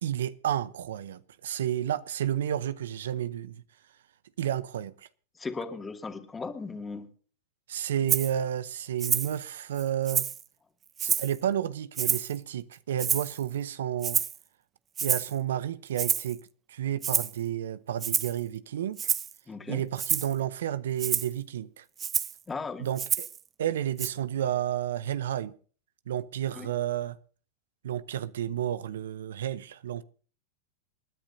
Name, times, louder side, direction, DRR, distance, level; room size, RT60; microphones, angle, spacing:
voice 1, 0.0-3.6 4.4-4.9 7.7-10.3 11.0-14.2 15.0-19.0 19.7-21.8 22.8-23.3 23.6-25.5 26.1-27.2 27.8-30.0, right 10 dB, 80° right, 0.8 m, -31 dB
voice 2, 5.4-7.1 19.5-19.8 22.5-22.9 26.5-26.7, left 4 dB, 15° left, 2.3 m, -37 dB
Rattle (instrument), 8.1-8.3 9.0-9.4 9.8-10.4 11.0-11.4 12.0-12.4 13.0-13.4 14.0-14.4 15.0-15.3 16.0-16.3 17.0-17.4 18.0-18.4 19.0-19.3 20.0-20.3 21.0-21.3 22.0-22.4 23.0-23.4 24.0-24.1, right 8 dB, 25° right, 0.7 m, -28 dB
28.0 x 10.0 x 2.7 m
hypercardioid pair, 110°, 0 cm